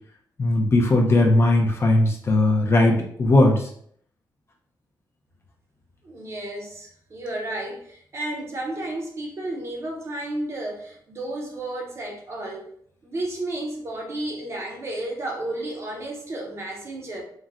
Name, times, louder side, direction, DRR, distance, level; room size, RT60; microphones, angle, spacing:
voice 1, 0.4-3.7, left 2 dB, 30° left, 0 dB, 0.4 m, -18 dB
voice 2, 6.0-12.7 13.0-17.2, right 1 dB, 35° right, -1 dB, 0.6 m, -32 dB
3.9 x 2.0 x 2.4 m, 0.63 s
wide cardioid pair, 175°, 8 cm